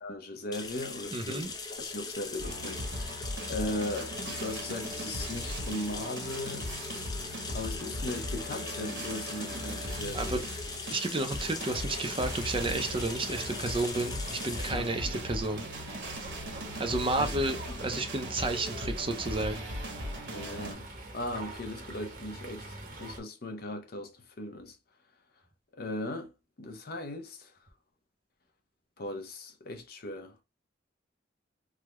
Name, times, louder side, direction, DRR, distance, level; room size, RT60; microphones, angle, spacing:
voice 1, 0.0-6.7 7.5-10.4 14.7-15.1 17.2-17.3 17.7-17.8 20.3-20.9 21.1-24.8 25.7-26.3 26.6-27.5 29.0-30.4, left 1 dB, 55° left, 0.7 m, -38 dB
sound 1, 0.5-19.9, left 4 dB, 20° left, 0.5 m, -42 dB
voice 2, 1.1-1.5 10.1-10.5 10.9-15.7 16.8-19.7, right 2 dB, 30° right, 0.6 m, -31 dB
sound 2, 2.4-20.7, equal, 70° right, 1.2 m, -38 dB
Fowl, 11.4-23.2, right 2 dB, 50° right, 0.9 m, -45 dB
3.5 x 2.2 x 2.9 m
head